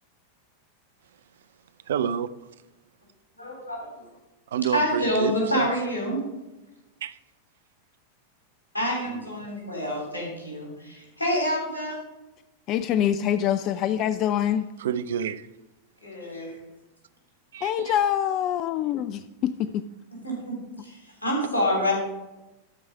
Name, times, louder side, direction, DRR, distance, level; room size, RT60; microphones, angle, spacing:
voice 1, 1.9-2.3 4.5-5.7 7.0-7.2 9.1-9.2 14.8-15.5 17.5-17.9, right 8 dB, 60° right, 0.4 m, -29 dB
voice 2, 3.4-4.1 4.7-6.2 8.7-12.0 16.0-16.6 20.1-21.9, equal, 80° left, 3.5 m, -27 dB
voice 3, 12.7-14.7 17.6-19.8, left 10 dB, 35° left, 0.3 m, -25 dB
12.5 x 4.7 x 5.4 m
figure-of-eight pair, 90°, 0 cm